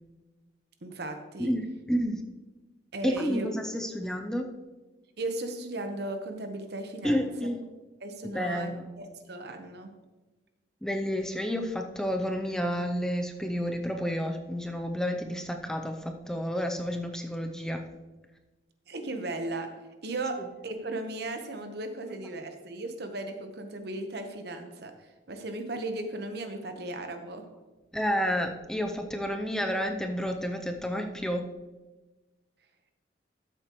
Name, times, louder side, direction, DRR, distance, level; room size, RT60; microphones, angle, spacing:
voice 1, 0.8-1.5 2.9-3.5 5.2-7.3 8.0-9.9 18.9-19.7 20.0-20.4 20.6-24.9 25.3-27.4, right 2 dB, 60° right, 6 dB, 1.0 m, -36 dB
voice 2, 1.4-2.2 3.0-4.5 7.0-7.6 8.3-8.9 10.8-17.8 27.9-31.5, equal, 5° left, 4 dB, 0.5 m, -30 dB
13.0 x 7.4 x 3.0 m, 1.2 s
head